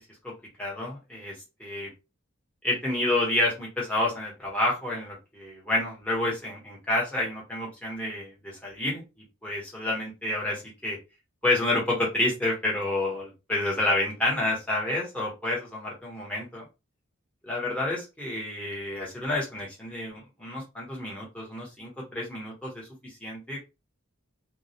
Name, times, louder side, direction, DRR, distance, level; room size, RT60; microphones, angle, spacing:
voice 1, 0.2-1.3 1.6-1.9 2.6-9.0 9.4-11.0 11.4-16.6 17.4-23.6, left 2 dB, 5° left, -4 dB, 0.9 m, -29 dB
2.3 x 2.0 x 2.7 m, 0.27 s
head